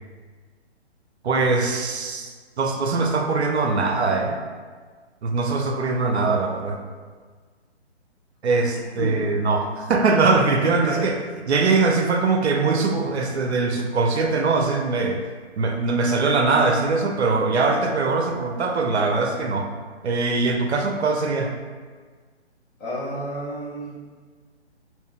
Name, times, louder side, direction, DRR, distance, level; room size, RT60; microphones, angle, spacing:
voice 1, 1.2-4.4 5.2-6.8 8.4-11.1 11.5-15.2 15.6-19.7 20.0-21.6, right 3 dB, 70° right, 3 dB, 0.6 m, -22 dB
voice 2, 10.6-11.1 22.8-24.0, equal, 20° left, -9 dB, 0.9 m, -30 dB
3.5 x 2.5 x 3.5 m, 1.5 s
figure-of-eight pair, 140°, 34 cm